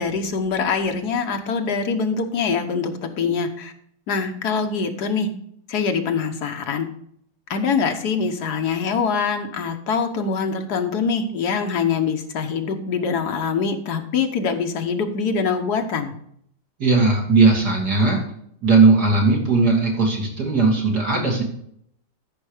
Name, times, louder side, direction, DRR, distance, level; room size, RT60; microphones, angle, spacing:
voice 1, 0.0-2.9 3.2-3.7 4.1-5.3 5.7-6.9 7.5-16.1, left 5 dB, 60° left, 5 dB, 1.5 m, -24 dB
voice 2, 16.8-18.2 18.6-21.4, right 3 dB, 55° right, -1 dB, 3.1 m, -17 dB
13.5 x 5.4 x 4.9 m, 0.68 s
omnidirectional pair, 2.0 m